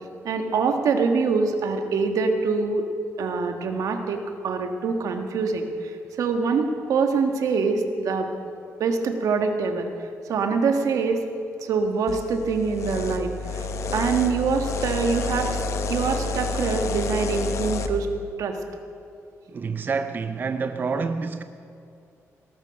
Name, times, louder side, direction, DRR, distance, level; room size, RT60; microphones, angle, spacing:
voice 1, 0.2-2.9 3.2-8.3 8.8-9.9 10.3-11.2 11.6-13.7 13.9-15.6 15.9-18.1 18.4-18.6, right 4 dB, 85° right, 1.5 m, -24 dB
sound 1, 12.1-17.9, left 3 dB, 60° left, 1.0 m, -29 dB
voice 2, 19.5-21.4, right 5 dB, 35° right, 0.5 m, -28 dB
18.0 x 13.0 x 5.9 m
wide cardioid pair, 145°, 6 cm